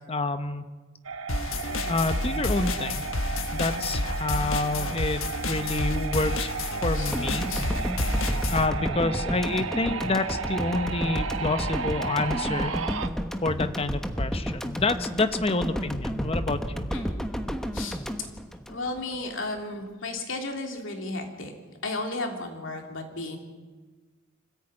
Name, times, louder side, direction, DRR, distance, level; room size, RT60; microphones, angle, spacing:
voice 1, 0.1-0.6 1.9-3.0 3.5-6.5 6.8-7.5 7.8-7.9 8.5-12.7 13.4-16.9, left 2 dB, 30° left, 9 dB, 1.1 m, -28 dB
sound 1, 1.1-13.1, right 5 dB, 85° right, 1.1 m, -34 dB
sound 2, 1.3-8.7, left 2 dB, 85° left, 1.4 m, -30 dB
sound 3, 7.1-19.3, equal, 5° left, 1.2 m, -31 dB
voice 2, 16.9-17.2 17.7-18.0 18.7-21.5 21.8-23.4, left 2 dB, 70° left, 2 dB, 3.3 m, -34 dB
26.0 x 15.0 x 9.0 m, 1.3 s
head